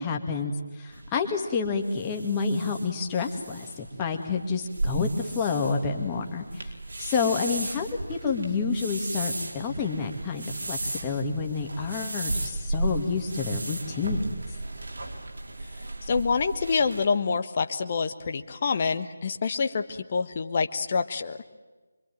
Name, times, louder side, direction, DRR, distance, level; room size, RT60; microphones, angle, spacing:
voice 1, 0.0-6.7 7.0-14.4, left 5 dB, 15° left, 2 dB, 2.3 m, -29 dB
sound 1, 0.9-17.0, right 2 dB, 55° right, 4.5 m, -35 dB
voice 2, 16.0-21.4, left 5 dB, 35° left, 7 dB, 1.2 m, -27 dB
25.5 x 25.5 x 9.2 m, 1.2 s
figure-of-eight pair, 155°, 0 cm